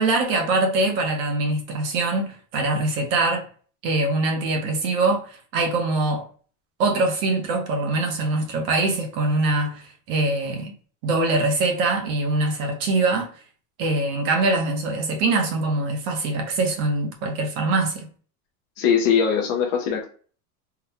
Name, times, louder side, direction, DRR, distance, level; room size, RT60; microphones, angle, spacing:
voice 1, 0.0-3.5 3.8-6.3 6.8-10.7 11.0-13.3 13.8-18.1, right 2 dB, 45° right, 0.8 m, -23 dB
voice 2, 18.8-20.1, left 7 dB, 35° left, 0.5 m, -21 dB
3.8 x 2.2 x 2.7 m
supercardioid pair, 170°, 43 cm